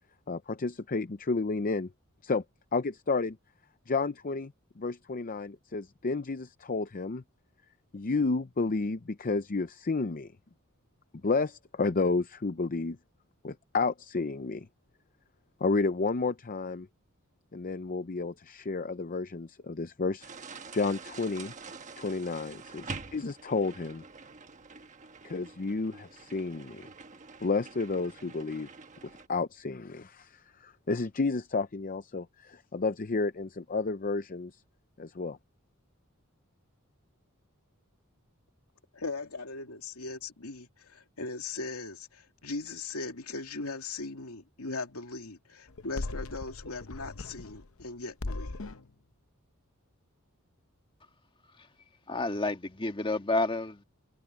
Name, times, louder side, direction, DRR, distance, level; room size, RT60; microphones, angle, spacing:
voice 1, 0.3-1.9 2.2-2.4 2.7-3.4 3.9-7.2 7.9-10.3 11.1-13.0 13.4-14.7 15.6-16.9 17.5-20.3 20.7-21.5 22.0-24.0 25.2-26.9 27.4-28.7 29.0-34.6 35.0-35.4, left 3 dB, 40° left, 0.6 m, -31 dB
sound 1, 20.2-29.3, right 4 dB, 35° right, 1.3 m, -46 dB
voice 2, 38.9-48.5, left 3 dB, 85° left, 2.6 m, -39 dB
sound 2, 45.7-47.9 48.2-48.9, left 2 dB, 70° left, 0.9 m, -39 dB
voice 3, 52.1-53.8, left 2 dB, 25° left, 1.7 m, -30 dB
head